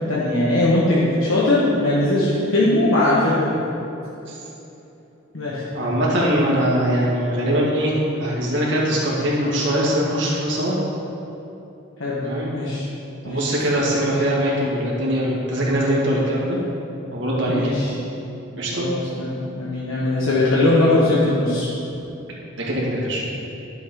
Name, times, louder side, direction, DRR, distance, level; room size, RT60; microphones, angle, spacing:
voice 1, 0.0-3.6 5.3-5.6 12.0-12.2 12.5-12.8 13.2-13.5 17.5-17.9 18.7-21.7, left 2 dB, 75° left, -7 dB, 1.5 m, -20 dB
voice 2, 5.7-10.8 12.2-12.5 13.2-16.6 17.1-17.8 18.6-18.9 22.7-23.2, equal, 60° right, -5 dB, 2.2 m, -22 dB
11.5 x 7.3 x 4.0 m, 2.9 s
head